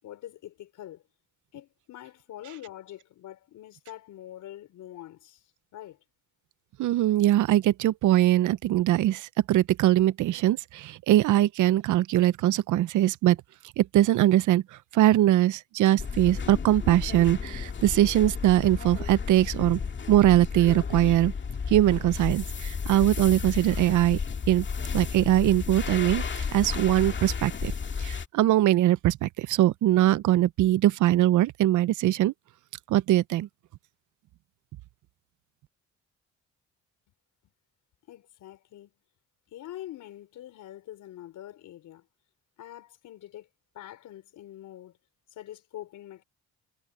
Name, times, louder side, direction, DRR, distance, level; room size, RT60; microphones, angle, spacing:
voice 1, 0.0-1.0 1.5-6.0 38.1-38.9 39.5-42.1 42.6-43.5 43.7-45.0 45.3-46.2, left 13 dB, 80° left, 4.5 m, -44 dB
voice 2, 6.8-13.4 13.8-14.6 14.9-19.8 20.1-21.3 21.7-24.2 24.5-24.6 24.9-26.2 26.5-27.7 28.0-32.3 32.9-33.5, right 14 dB, 80° right, 0.7 m, -22 dB
sound 1, 16.0-28.3, left 6 dB, 40° left, 2.2 m, -33 dB
cardioid pair, 90°, 30 cm